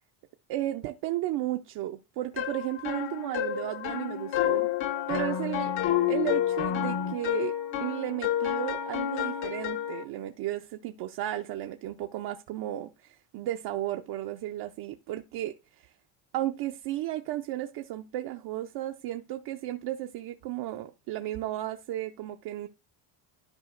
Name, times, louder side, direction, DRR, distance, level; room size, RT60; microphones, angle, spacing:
voice 1, 0.5-4.7 5.1-7.5 7.8-15.9 16.3-22.7, right 14 dB, 55° right, 0.6 m, -34 dB
sound 1, 2.4-10.0, left 10 dB, 65° left, 1.0 m, -29 dB
12.5 x 5.0 x 2.5 m
cardioid pair, 155°, 49 cm